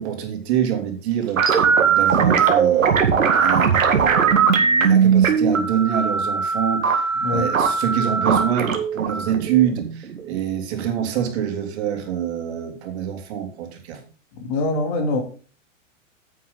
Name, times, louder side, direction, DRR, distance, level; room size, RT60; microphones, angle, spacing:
voice 1, 0.0-3.1 3.4-14.0, right 9 dB, 55° right, 5 dB, 2.9 m, -26 dB
sound 1, 1.4-10.3, right 6 dB, 90° right, 2.0 m, -19 dB
voice 2, 7.1-7.5 14.3-15.2, left 2 dB, 50° left, 5 dB, 2.9 m, -24 dB
9.5 x 8.5 x 3.9 m, 0.38 s
hypercardioid pair, 120°, 39 cm